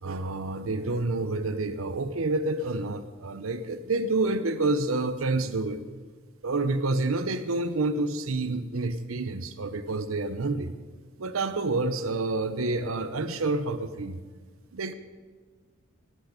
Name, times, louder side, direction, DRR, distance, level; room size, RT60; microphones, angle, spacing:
voice 1, 0.0-5.8 6.4-10.7 11.2-14.2 14.7-14.9, right 2 dB, 90° right, 11 dB, 0.8 m, -28 dB
20.0 x 8.5 x 5.2 m, 1.5 s
head